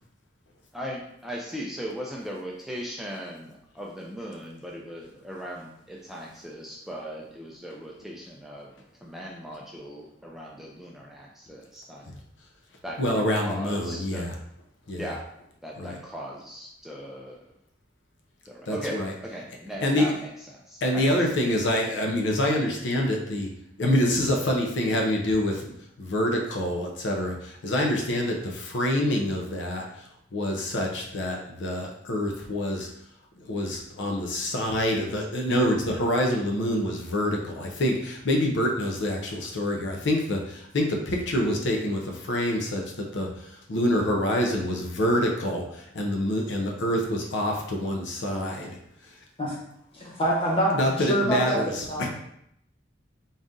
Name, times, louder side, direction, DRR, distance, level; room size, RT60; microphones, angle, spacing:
voice 1, 0.7-8.7 9.0-12.1 12.8-14.3 15.0-15.2 15.6-17.4 18.5-20.3 20.7-21.0, equal, ahead, -3 dB, 0.4 m, -38 dB
voice 2, 13.0-14.3 14.9-15.1 15.8-16.0 18.7-19.1 19.8-20.1 20.8-23.5 23.8-30.1 30.3-32.9 33.4-48.8 49.0-49.1 50.7-52.1, left 1 dB, 70° left, 1 dB, 0.6 m, -26 dB
voice 3, 49.9-52.1, right 1 dB, 30° left, -4 dB, 1.2 m, -26 dB
4.0 x 2.5 x 3.6 m, 0.74 s
head